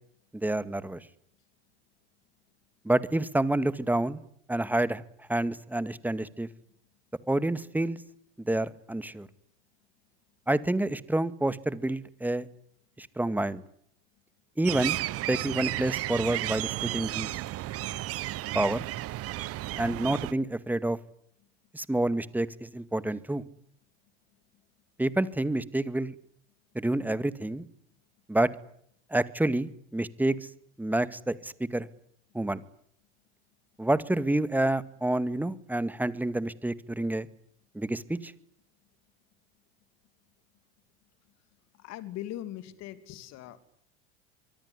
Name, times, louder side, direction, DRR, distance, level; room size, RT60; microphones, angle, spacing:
voice 1, 0.3-1.0 2.8-4.2 4.5-5.0 5.3-6.5 7.3-8.0 8.5-9.3 10.5-12.5 13.0-13.6 14.6-15.0 15.3-17.3 18.5-18.9 19.8-21.0 21.7-23.4 25.0-26.2 26.7-27.7 28.3-28.5 29.1-30.5 30.8-31.9 32.3-32.6 33.8-37.3 37.7-38.3, right 1 dB, 5° right, 15 dB, 2.0 m, -28 dB
sound 1, 14.6-20.3, right 16 dB, 45° right, 1.1 m, -33 dB
voice 2, 41.8-43.6, left 13 dB, 50° left, 12 dB, 3.0 m, -40 dB
24.5 x 24.0 x 9.9 m, 0.68 s
hypercardioid pair, 90°, 33 cm